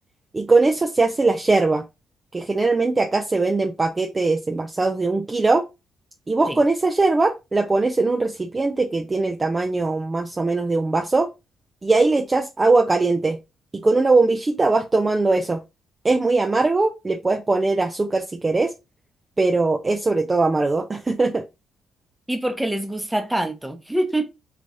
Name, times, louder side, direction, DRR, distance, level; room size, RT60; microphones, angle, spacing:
voice 1, 0.3-1.8 2.3-5.6 6.3-11.3 11.8-13.4 13.8-15.6 16.0-18.7 19.4-21.4, right 3 dB, 25° right, 0.5 m, -20 dB
voice 2, 22.3-24.3, right 1 dB, 10° right, 0.8 m, -25 dB
4.8 x 3.0 x 2.6 m
cardioid pair, 90°, 0 cm